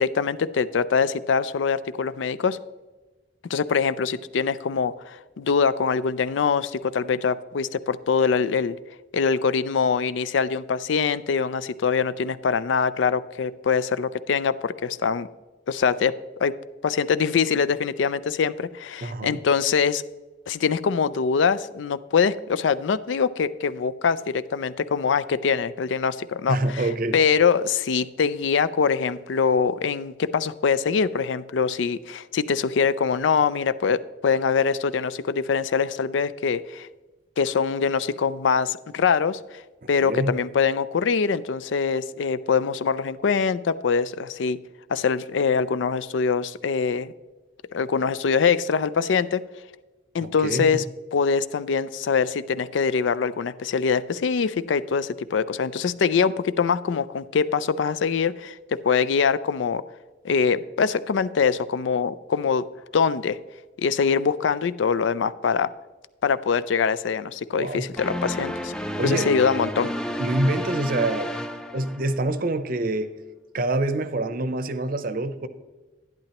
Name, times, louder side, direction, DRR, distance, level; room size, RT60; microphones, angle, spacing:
voice 1, 0.0-2.6 3.5-8.8 9.1-15.3 15.7-16.5 16.8-20.0 20.5-36.9 37.4-39.6 39.9-44.6 44.9-47.1 47.7-49.4 50.1-50.8 51.1-59.8 60.2-62.6 62.9-63.4 63.8-65.7 66.2-68.7 69.0-69.9, left 6 dB, 85° left, 16 dB, 0.4 m, -23 dB
voice 2, 19.0-19.4 26.5-27.2 39.8-40.4 50.2-50.8 67.5-67.9 69.0-69.3 70.2-71.4 71.7-73.1 73.5-75.5, right 2 dB, 50° right, 12 dB, 0.6 m, -26 dB
sound 1, 68.0-72.4, equal, 5° left, 0.4 m, -31 dB
12.0 x 10.5 x 2.9 m, 1.2 s
head